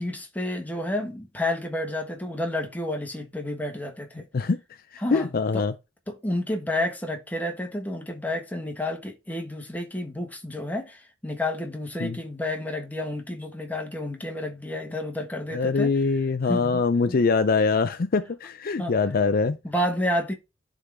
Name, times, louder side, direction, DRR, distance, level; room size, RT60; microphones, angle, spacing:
voice 1, 0.0-4.3 5.0-5.7 6.1-15.9 16.4-17.2 18.8-18.9 19.6-20.3, left 1 dB, 10° left, 1.3 m, -30 dB
voice 2, 5.1-5.7 12.0-12.2 15.5-19.6, left 4 dB, 50° left, 0.5 m, -23 dB
11.0 x 3.8 x 3.4 m
head